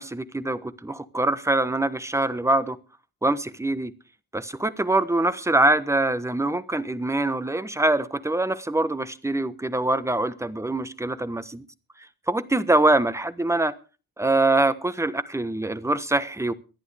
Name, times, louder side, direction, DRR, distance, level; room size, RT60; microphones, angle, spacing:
voice 1, 0.0-2.8 3.2-3.9 4.3-11.6 12.3-13.7 14.2-16.5, right 2 dB, 5° right, 13 dB, 1.2 m, -24 dB
24.5 x 11.0 x 3.4 m, 0.34 s
cardioid pair, 85°, 39 cm